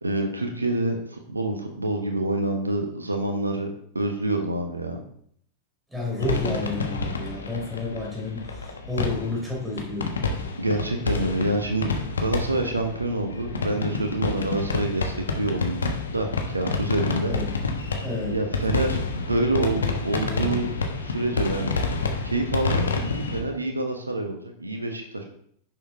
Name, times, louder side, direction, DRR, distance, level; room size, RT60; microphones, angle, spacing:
voice 1, 0.0-3.7 3.9-5.0 10.6-11.9 12.2-17.4 18.3-20.7 21.0-21.7 22.2-25.2, right 2 dB, 80° right, 4 dB, 1.1 m, -27 dB
voice 2, 5.9-10.2 17.3-17.6 17.9-18.4, left 2 dB, 10° right, -3 dB, 3.9 m, -30 dB
sound 1, 6.2-23.4, left 3 dB, 70° left, 1.2 m, -29 dB
10.5 x 6.9 x 3.6 m, 0.65 s
figure-of-eight pair, 90°, 0 cm